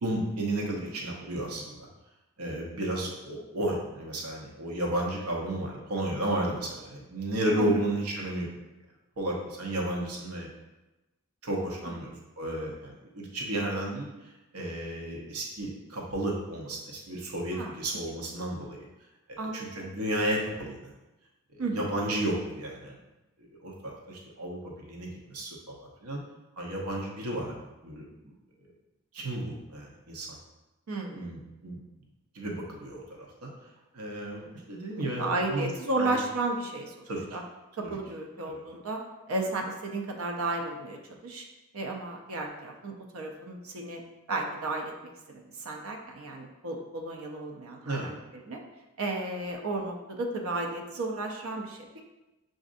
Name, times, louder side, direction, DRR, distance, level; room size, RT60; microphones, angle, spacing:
voice 1, 0.0-1.9 2.4-8.5 9.2-10.5 11.4-12.1 12.4-14.1 14.5-18.8 19.3-20.9 21.5-23.0 23.4-26.2 26.6-28.3 29.1-30.4 31.1-31.8 32.3-33.5 33.9-35.7 36.0-36.2 37.0-37.4 37.8-38.0 38.5-38.6 47.8-48.1, right 1 dB, 85° right, -1 dB, 0.9 m, -33 dB
voice 2, 19.4-19.9 21.6-21.9 30.9-31.3 35.2-36.9 37.3-37.4 37.8-39.0 39.3-41.4 41.7-44.0 44.3-44.9 45.3-48.2 48.5-48.6 49.0-51.8, right 2 dB, 70° right, 2 dB, 0.5 m, -33 dB
6.1 x 2.5 x 2.5 m, 1.0 s
head